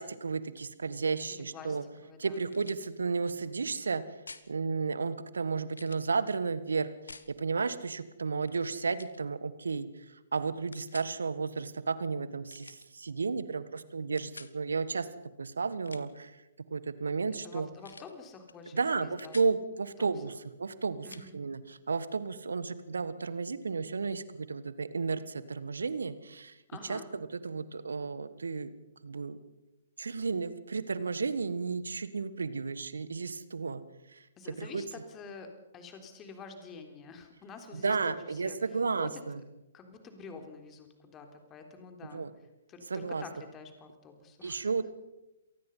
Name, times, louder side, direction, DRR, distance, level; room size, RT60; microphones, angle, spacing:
voice 1, 0.0-1.8 2.2-4.0 4.5-15.1 15.4-16.4 16.7-17.7 18.7-26.6 26.9-27.0 27.4-28.7 29.0-29.4 30.0-33.8 34.1-34.3 34.6-34.8 37.7-39.4 42.1-42.3 42.9-43.2 44.4-44.9, right 4 dB, 70° right, 15 dB, 1.5 m, -33 dB
voice 2, 1.3-2.5 17.4-19.4 20.0-20.1 21.0-21.4 26.7-27.1 34.4-38.6 38.9-39.2 39.7-42.2 42.7-44.7, left 5 dB, 20° left, 5 dB, 3.7 m, -48 dB
sound 1, 2.5-2.9 4.3-4.5 5.7-6.1 7.1-7.3 8.4-8.7 9.0-9.2 10.7-11.1 12.5-12.9 14.2-14.5 15.7-16.2 17.8-18.1 18.5-18.6 18.9-19.5 21.1-21.3, left 4 dB, 75° left, 1.4 m, -49 dB
27.0 x 19.5 x 5.6 m, 0.97 s
figure-of-eight pair, 125°, 0 cm